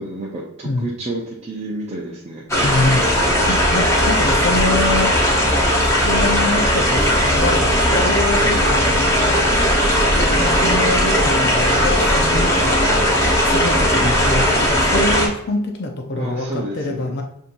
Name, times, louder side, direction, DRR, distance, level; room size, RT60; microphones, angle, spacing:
voice 1, 0.0-2.4 3.3-3.5 8.4-8.6 16.1-17.1, right 1 dB, 30° right, -4 dB, 0.6 m, -30 dB
sound 1, 2.5-15.3, equal, 15° left, 0.8 m, -17 dB
voice 2, 2.6-5.2 5.8-9.4 10.1-13.1 13.4-17.2, left 2 dB, 50° left, 2 dB, 0.6 m, -25 dB
7.0 x 2.7 x 2.6 m, 0.76 s
head